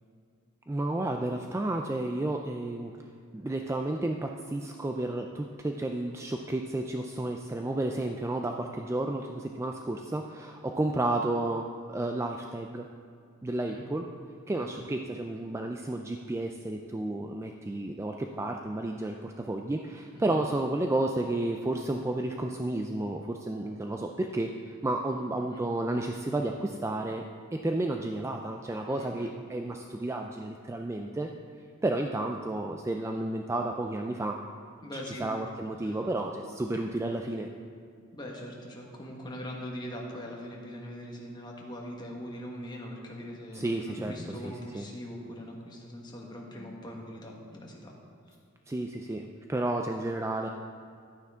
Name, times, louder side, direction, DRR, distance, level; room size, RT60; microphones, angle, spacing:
voice 1, 0.7-3.0 3.3-12.9 13.4-14.1 14.5-27.2 27.5-31.3 31.8-34.4 35.1-37.5 43.5-44.1 44.4-44.9 48.7-50.5, right 2 dB, 15° right, 3 dB, 0.3 m, -32 dB
voice 2, 25.1-25.6 28.9-29.3 34.8-35.3 35.8-36.0 38.1-47.9, equal, 20° left, -1 dB, 1.4 m, -41 dB
11.5 x 9.3 x 3.6 m, 2.4 s
head